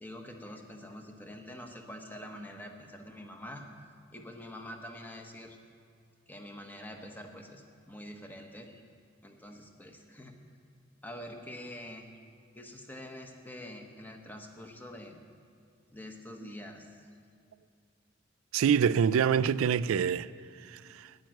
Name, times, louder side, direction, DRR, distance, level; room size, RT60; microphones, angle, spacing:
voice 1, 0.0-3.7 4.1-5.6 6.3-8.8 9.2-10.3 11.0-12.1 12.5-15.2 15.9-17.1, left 1 dB, 10° left, 0.9 m, -45 dB
voice 2, 18.5-20.3 20.6-21.1, right 7 dB, 80° right, 0.3 m, -26 dB
9.2 x 9.1 x 9.0 m
head